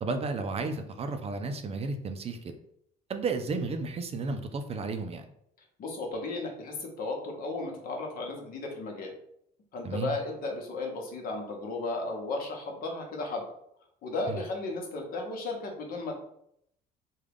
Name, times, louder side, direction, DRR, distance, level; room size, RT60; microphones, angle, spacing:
voice 1, 0.0-2.5 3.1-5.2 9.8-10.1 14.3-14.4, right 3 dB, 35° right, 7 dB, 0.4 m, -33 dB
voice 2, 5.8-9.1 9.7-13.4 14.0-16.1, left 2 dB, 60° left, 1 dB, 1.0 m, -34 dB
3.6 x 2.3 x 3.4 m, 0.72 s
cardioid pair, 110°, 17 cm